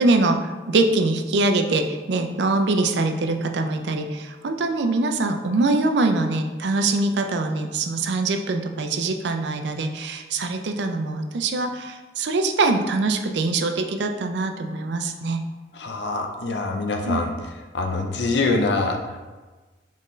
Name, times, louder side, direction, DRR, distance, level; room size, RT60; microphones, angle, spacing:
voice 1, 0.0-15.4 17.0-17.2, right 3 dB, 75° right, 5 dB, 0.4 m, -23 dB
voice 2, 15.7-17.3 17.7-19.2, left 3 dB, 75° left, 3 dB, 0.6 m, -24 dB
4.3 x 3.6 x 3.1 m, 1.3 s
head